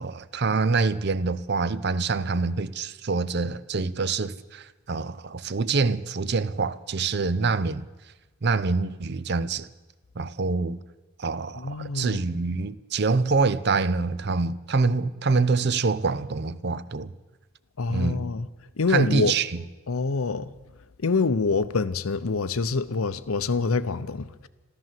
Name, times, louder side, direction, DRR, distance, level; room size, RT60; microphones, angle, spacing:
voice 1, 0.0-7.9 8.4-9.7 10.2-10.8 11.2-17.1 17.9-18.3 18.9-19.6, right 4 dB, 50° right, 0.5 m, -25 dB
voice 2, 11.6-12.2 17.8-18.5 18.8-19.3 19.9-20.5 21.0-24.5, left 4 dB, 80° left, 0.7 m, -26 dB
14.0 x 13.5 x 7.6 m
head